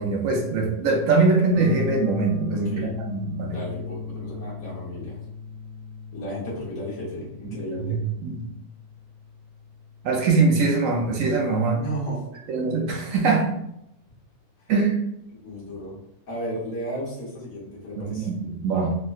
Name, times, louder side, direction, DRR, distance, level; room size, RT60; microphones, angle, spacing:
voice 1, 0.0-2.7 3.1-3.6 4.2-4.4 7.7-8.4 10.0-11.8 12.5-13.5 14.7-15.0 18.0-18.9, right 3 dB, 70° right, 0 dB, 0.9 m, -22 dB
sound 1, 1.5-11.4, left 3 dB, 90° right, 1.2 m, -37 dB
voice 2, 2.5-2.9 3.5-5.2 6.1-8.0 11.8-12.2 15.3-16.0 16.3-18.3, equal, 75° left, -6 dB, 1.5 m, -34 dB
3.5 x 2.2 x 2.3 m, 0.80 s
omnidirectional pair, 1.6 m